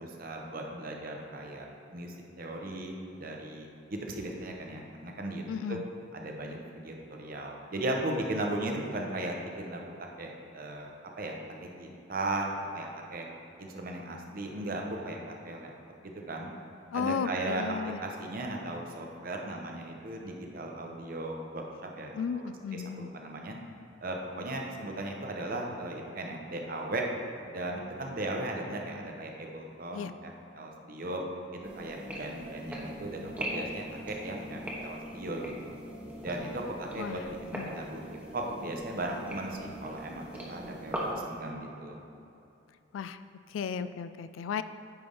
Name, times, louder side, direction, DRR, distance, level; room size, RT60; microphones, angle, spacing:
voice 1, 0.0-5.4 5.7-5.8 6.1-9.8 10.2-10.9 11.2-12.4 12.7-13.3 13.6-15.2 15.4-15.7 16.0-16.5 16.9-21.6 22.0-23.6 24.0-27.0 27.4-31.2 31.5-35.8 36.2-38.0 38.3-42.0, right 1 dB, 50° right, 1 dB, 0.8 m, -37 dB
voice 2, 5.5-5.8 16.9-18.0 22.1-23.1 29.9-30.1 37.0-37.2 37.5-37.7 42.9-43.2 43.5-44.6, left 6 dB, 85° left, 12 dB, 0.3 m, -34 dB
sound 1, 31.6-41.1, equal, 10° right, 0.9 m, -40 dB
9.1 x 3.4 x 5.4 m, 2.7 s
head